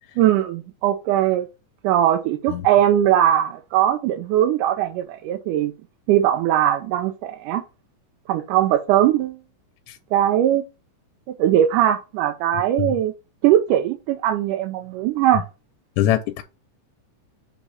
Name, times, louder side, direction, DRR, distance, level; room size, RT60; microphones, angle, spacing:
voice 1, 0.2-1.5 1.8-5.7 6.1-7.6 8.3-9.4 10.1-10.6 11.4-13.1 13.4-15.4, right 11 dB, 85° right, 2.1 m, -20 dB
voice 2, 16.0-16.4, left 12 dB, 80° left, 1.9 m, -22 dB
7.1 x 3.6 x 4.2 m
omnidirectional pair, 3.6 m